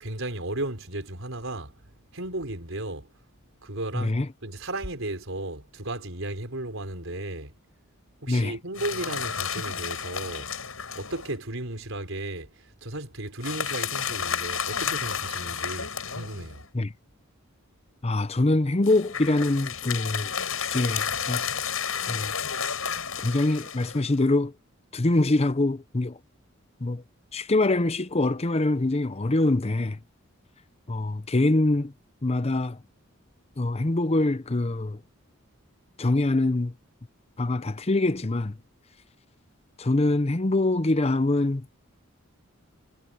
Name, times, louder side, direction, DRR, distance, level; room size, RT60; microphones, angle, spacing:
voice 1, 0.0-1.8 2.1-3.1 3.6-7.5 8.2-10.5 10.9-16.7, right 2 dB, 70° right, 4.9 m, -35 dB
voice 2, 3.9-4.3 8.3-8.5 16.7-16.9 18.0-20.3 20.6-21.5 22.1-22.3 23.2-24.5 24.9-26.2 26.8-27.0 27.3-30.0 30.9-31.9 32.2-32.8 33.6-35.0 36.0-36.7 37.4-38.6 39.8-41.7, left 2 dB, 30° left, 0.7 m, -24 dB
sound 1, 8.8-11.3 13.4-16.7 18.8-24.2, left 7 dB, 80° left, 7.8 m, -31 dB
head